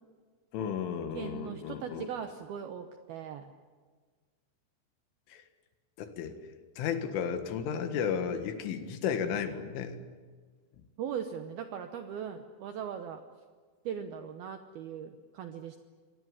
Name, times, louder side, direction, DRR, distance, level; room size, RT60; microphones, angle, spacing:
voice 1, 0.5-2.1 5.3-5.4 6.0-6.4 6.8-10.0, left 7 dB, 75° left, 8 dB, 4.1 m, -33 dB
voice 2, 1.1-3.5 11.0-13.2 13.8-15.8, right 8 dB, 75° right, 7 dB, 2.2 m, -39 dB
25.0 x 19.0 x 9.9 m, 1.5 s
omnidirectional pair, 5.7 m